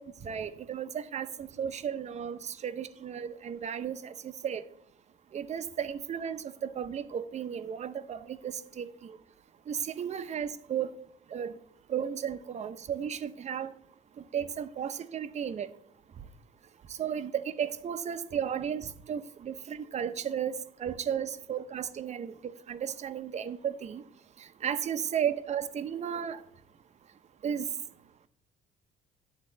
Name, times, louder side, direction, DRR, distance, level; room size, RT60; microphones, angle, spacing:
voice 1, 0.0-4.6 5.3-9.2 9.7-10.9 11.3-11.6 11.9-13.7 14.3-15.7 16.9-24.0 24.4-26.4 27.4-27.7, right 8 dB, 40° right, 11 dB, 0.7 m, -34 dB
10.0 x 3.7 x 7.2 m, 0.68 s
cardioid pair, 110°, 17 cm